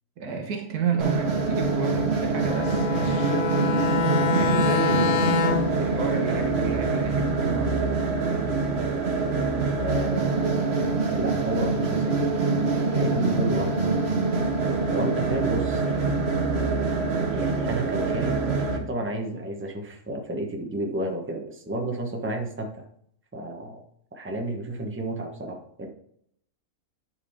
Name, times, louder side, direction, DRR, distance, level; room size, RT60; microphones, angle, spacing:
voice 1, 0.2-3.4 4.3-5.3 5.8-7.9, right 5 dB, 85° right, 3 dB, 1.8 m, -31 dB
sound 1, 1.0-18.8, right 4 dB, 45° right, 1.3 m, -25 dB
Bowed string instrument, 2.4-5.8, left 5 dB, 70° left, 1.1 m, -26 dB
voice 2, 9.8-10.6 11.1-13.9 14.9-16.2 17.3-22.8 23.3-23.8 24.1-25.9, right 1 dB, 10° right, 2 dB, 1.0 m, -32 dB
10.0 x 4.8 x 3.6 m, 0.67 s
omnidirectional pair, 1.6 m